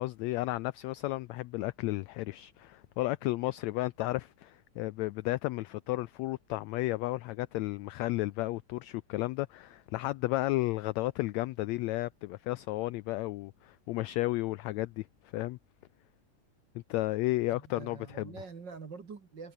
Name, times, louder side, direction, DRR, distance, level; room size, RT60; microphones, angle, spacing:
voice 1, 0.0-15.1 15.3-15.6 16.7-18.3, left 18 dB, 85° left, 1.5 m, -33 dB
voice 2, 17.5-19.5, right 5 dB, 40° right, 2.2 m, -45 dB
omnidirectional pair, 3.7 m